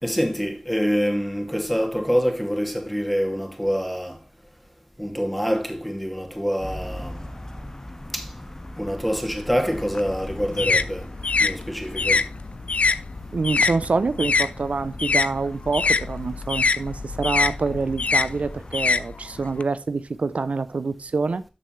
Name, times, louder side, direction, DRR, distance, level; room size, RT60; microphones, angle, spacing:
voice 1, 0.0-4.2 5.0-7.2 8.1-8.3 8.8-11.1 11.4-12.2, equal, ahead, 2.4 m, -25 dB
sound 1, 6.6-18.8, left 1 dB, 30° left, 1.5 m, -39 dB
sound 2, 9.7-14.5 14.8-19.6, left 4 dB, 85° left, 0.4 m, -24 dB
voice 2, 13.3-21.4, right 4 dB, 85° right, 0.5 m, -26 dB
13.5 x 6.6 x 3.2 m
wide cardioid pair, 55°, 2 cm